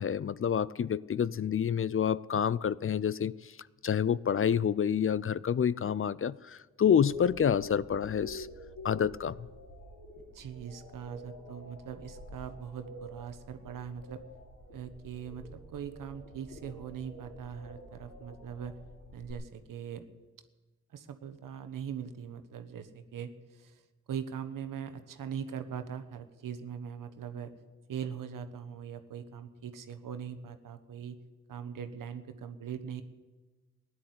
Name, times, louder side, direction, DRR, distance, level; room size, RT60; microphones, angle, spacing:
voice 1, 0.0-3.5 3.8-8.5 8.8-9.5, left 8 dB, 40° left, 0.5 m, -28 dB
sound 1, 7.0-19.3, equal, 70° left, 5.5 m, -48 dB
voice 2, 10.3-14.2 14.7-18.8 19.1-20.0 20.9-23.8 24.1-27.5 27.9-31.2 31.5-33.0, right 8 dB, 75° right, 1.2 m, -41 dB
16.0 x 10.5 x 8.0 m
supercardioid pair, 40°, 33 cm